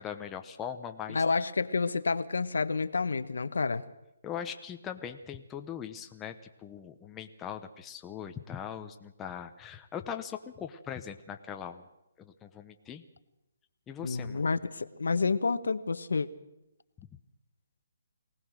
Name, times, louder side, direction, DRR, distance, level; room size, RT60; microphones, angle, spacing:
voice 1, 0.0-1.2 4.2-6.3 6.6-11.9 12.2-13.0 13.9-14.4, left 8 dB, 10° left, 5 dB, 0.8 m, -40 dB
voice 2, 1.1-3.8 14.0-16.3, left 4 dB, 90° left, 11 dB, 1.1 m, -29 dB
23.5 x 18.0 x 6.4 m, 0.89 s
hypercardioid pair, 165°, 0 cm